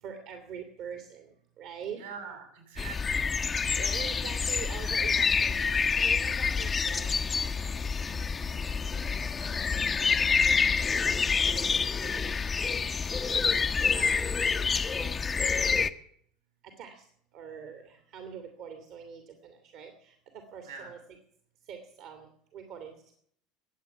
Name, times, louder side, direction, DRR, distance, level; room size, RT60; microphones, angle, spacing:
voice 1, 0.0-2.0 3.7-8.6 8.9-9.7 10.2-10.7 11.3-12.8 13.1-14.4 14.9-15.8 16.6-17.0 17.3-21.2 21.6-23.2, right 7 dB, 50° right, 6 dB, 2.3 m, -45 dB
voice 2, 2.0-3.3 13.9-14.4 15.3-15.6 20.7-20.9, right 5 dB, 75° right, 4 dB, 6.3 m, -44 dB
sound 1, 2.8-15.9, left 5 dB, 25° left, 0.9 m, -27 dB
21.5 x 8.5 x 7.0 m, 0.66 s
figure-of-eight pair, 70°, 0 cm